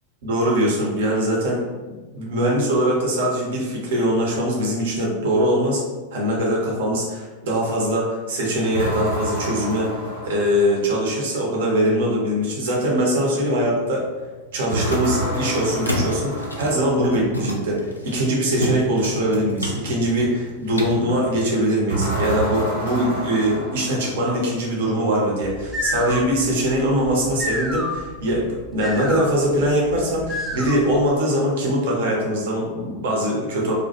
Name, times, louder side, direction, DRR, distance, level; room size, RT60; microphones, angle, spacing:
voice 1, 0.2-1.6 2.1-5.8 6.1-9.9 10.2-14.0 14.5-33.7, equal, 55° right, -2 dB, 0.7 m, -22 dB
sound 1, 8.7-11.1 14.7-17.2 21.9-24.5, right 1 dB, 80° right, 1.0 m, -28 dB
sound 2, 13.8-21.5, left 1 dB, 85° left, 0.3 m, -31 dB
sound 3, 25.4-31.0, left 1 dB, 5° right, 0.4 m, -30 dB
2.2 x 2.1 x 2.8 m, 1.3 s
figure-of-eight pair, 90°, 0 cm